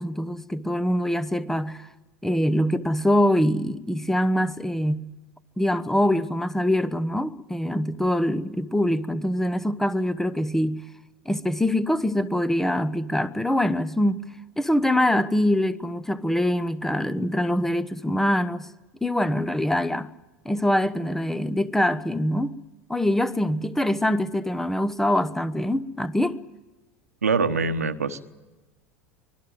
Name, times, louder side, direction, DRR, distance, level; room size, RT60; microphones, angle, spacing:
voice 1, 0.0-1.9 2.2-5.1 5.6-10.8 11.2-14.2 14.6-18.7 19.0-20.1 20.4-22.6 22.9-26.4, left 1 dB, 5° left, 1.0 m, -24 dB
voice 2, 27.2-28.2, right 4 dB, 80° right, 1.2 m, -24 dB
24.5 x 19.0 x 7.8 m
figure-of-eight pair, 80°, 8 cm